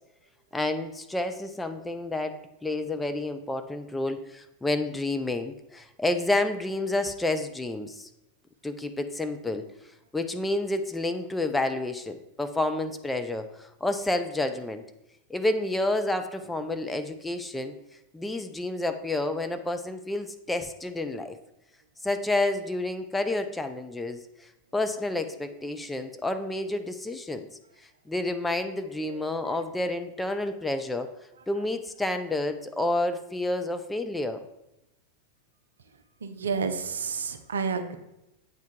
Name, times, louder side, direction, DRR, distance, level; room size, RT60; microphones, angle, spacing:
voice 1, 0.5-8.1 8.6-9.6 10.1-14.8 15.3-17.7 18.1-21.4 22.0-24.2 24.7-27.5 28.1-31.1 31.5-34.4, left 2 dB, 5° left, 7 dB, 0.4 m, -29 dB
voice 2, 36.2-38.0, right 5 dB, 70° right, 8 dB, 0.5 m, -30 dB
8.0 x 3.5 x 4.4 m, 0.89 s
figure-of-eight pair, 90°, 0 cm